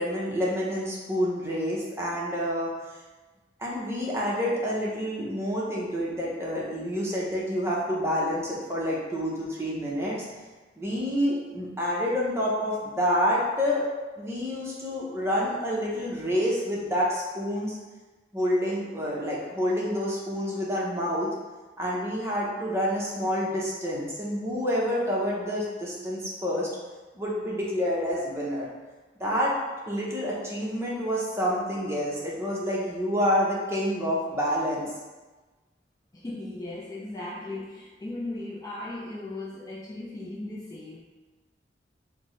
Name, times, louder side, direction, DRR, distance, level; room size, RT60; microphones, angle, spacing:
voice 1, 0.0-2.7 3.6-10.3 10.8-13.9 14.2-17.7 18.3-21.3 21.8-26.7 27.1-28.7 29.2-29.5 29.9-34.9, equal, 15° right, -5 dB, 0.7 m, -28 dB
voice 2, 36.1-41.0, left 2 dB, 20° left, -5 dB, 0.4 m, -37 dB
4.2 x 2.1 x 3.1 m, 1.2 s
head